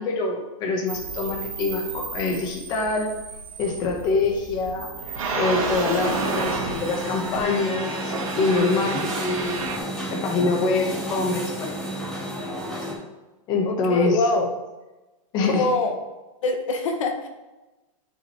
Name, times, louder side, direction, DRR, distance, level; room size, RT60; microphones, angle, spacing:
voice 1, 0.0-3.1 3.6-4.9 5.4-11.7 13.5-14.2 15.3-15.7, left 3 dB, 25° left, 1 dB, 1.4 m, -25 dB
sound 1, 0.9-9.8, right 4 dB, 75° right, 2.3 m, -31 dB
sound 2, 6.0-12.9, equal, 5° left, 1.7 m, -31 dB
voice 2, 13.7-14.5 15.4-15.9 16.4-17.3, left 3 dB, 65° left, 4 dB, 1.1 m, -24 dB
11.0 x 6.5 x 3.3 m, 1.1 s
supercardioid pair, 170°, 18 cm